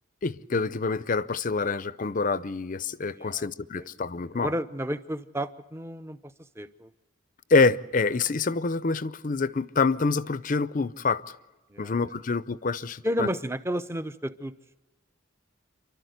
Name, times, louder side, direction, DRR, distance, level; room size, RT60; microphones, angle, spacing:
voice 1, 0.2-4.5 7.5-11.4 11.8-13.3, left 4 dB, 45° left, 17 dB, 0.6 m, -26 dB
voice 2, 3.2-3.5 3.8-3.9 4.3-6.2 6.6-6.9 11.7-12.0 13.0-14.5, equal, 15° right, 12 dB, 0.8 m, -32 dB
29.0 x 12.5 x 8.0 m, 1.2 s
head